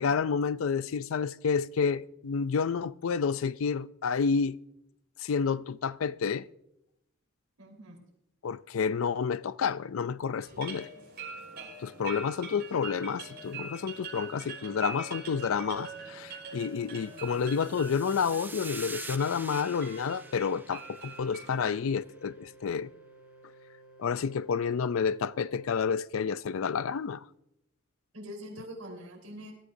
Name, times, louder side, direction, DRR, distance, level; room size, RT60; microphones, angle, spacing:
voice 1, 0.0-4.6 5.2-6.5 8.4-10.9 11.8-22.9 24.0-27.2, left 6 dB, 70° left, 0.4 m, -30 dB
voice 2, 7.6-8.0 28.1-29.5, equal, 80° right, 4.0 m, -44 dB
sound 1, 10.4-21.8, right 4 dB, 50° right, 6.1 m, -44 dB
sound 2, 17.1-21.6, right 3 dB, 10° right, 0.4 m, -45 dB
sound 3, 19.3-25.7, right 3 dB, 85° left, 2.0 m, -55 dB
21.0 x 12.5 x 2.7 m
head